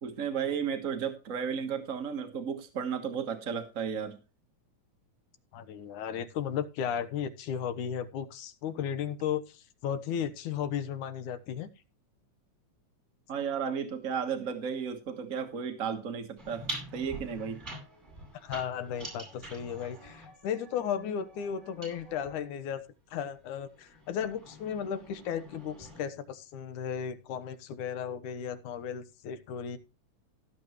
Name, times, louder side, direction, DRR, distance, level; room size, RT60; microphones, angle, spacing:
voice 1, 0.0-4.2 13.3-16.7 16.9-17.6, right 7 dB, 50° right, 6 dB, 0.9 m, -33 dB
voice 2, 5.5-11.7 18.4-22.8 23.1-29.8, left 8 dB, 80° left, 12 dB, 2.5 m, -35 dB
sound 1, 16.4-22.4 23.3-26.0, right 1 dB, 20° right, 8.0 m, -45 dB
17.5 x 7.7 x 3.1 m, 0.30 s
omnidirectional pair, 3.6 m